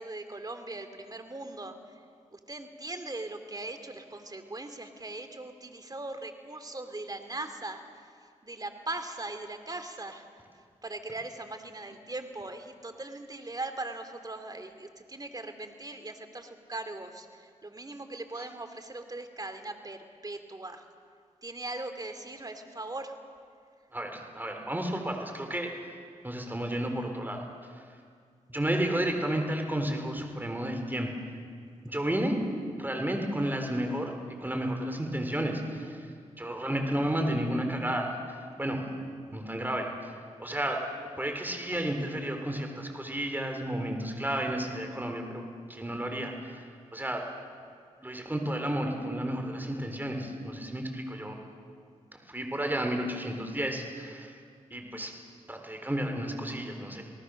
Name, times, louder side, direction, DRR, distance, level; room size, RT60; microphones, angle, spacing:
voice 1, 0.0-2.0 2.3-10.4 10.8-20.8 21.4-23.1, right 2 dB, 30° right, 8 dB, 2.7 m, -40 dB
voice 2, 23.9-25.7 26.2-27.8 28.5-31.1 31.8-32.4 32.8-34.1 34.4-36.1 36.4-38.9 39.3-40.1 40.4-40.8 41.2-45.4 45.7-46.7 46.9-47.3 48.0-51.4 52.1-54.4 54.7-55.1 55.5-57.0, right 1 dB, 15° right, 3 dB, 4.2 m, -32 dB
28.0 x 19.0 x 6.6 m, 2.1 s
cardioid pair, 50°, 13 cm